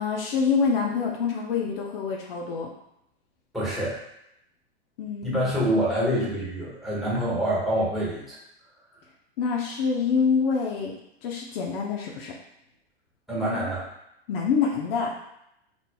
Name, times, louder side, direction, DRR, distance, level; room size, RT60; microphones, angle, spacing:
voice 1, 0.0-2.7 5.0-5.4 9.4-12.3 14.3-15.1, left 5 dB, 60° left, -1 dB, 0.7 m, -26 dB
voice 2, 3.5-4.0 5.2-8.4 13.3-13.9, equal, ahead, -7 dB, 1.4 m, -26 dB
4.3 x 3.0 x 2.2 m, 0.79 s
hypercardioid pair, 105°, 32 cm